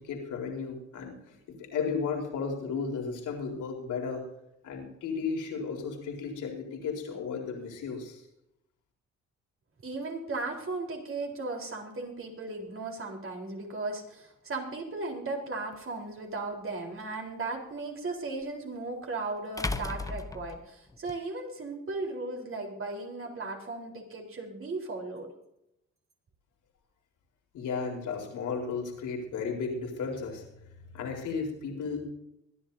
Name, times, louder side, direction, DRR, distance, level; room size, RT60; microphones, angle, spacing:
voice 1, 0.0-4.3 4.6-8.2 27.5-30.4 30.9-32.0, left 5 dB, 80° left, 0 dB, 4.3 m, -34 dB
voice 2, 9.8-25.3, right 3 dB, 45° right, 1 dB, 4.1 m, -36 dB
sound 1, 15.7-15.8 18.4-18.5 19.6-21.2, left 2 dB, 10° left, 0.9 m, -35 dB
23.5 x 11.0 x 2.8 m, 0.82 s
cardioid pair, 90°, 30 cm